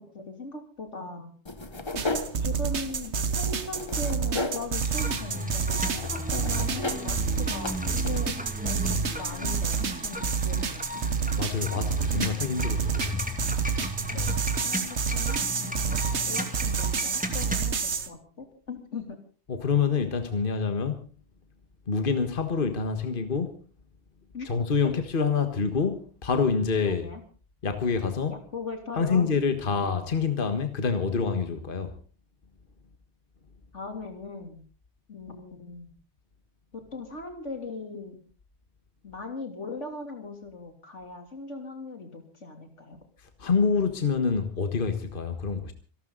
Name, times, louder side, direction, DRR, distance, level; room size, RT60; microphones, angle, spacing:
voice 1, 0.0-1.3 2.4-8.4 8.6-11.1 14.0-14.4 14.6-19.2 24.3-24.5 26.8-27.2 28.3-29.2 29.7-29.9 33.7-34.6 35.1-35.9 36.7-38.2 39.0-43.0, left 3 dB, 80° left, 3.4 m, -39 dB
sound 1, 1.5-9.8, left 2 dB, 25° left, 1.2 m, -37 dB
sound 2, 1.9-18.1, right 6 dB, 70° right, 1.5 m, -29 dB
sound 3, 4.8-17.6, left 1 dB, 5° right, 2.3 m, -35 dB
voice 2, 11.4-13.3 19.5-21.0 21.9-23.5 24.4-27.1 27.6-28.4 28.9-32.0 43.4-45.7, left 5 dB, 50° left, 1.6 m, -26 dB
27.0 x 12.5 x 4.0 m
omnidirectional pair, 1.2 m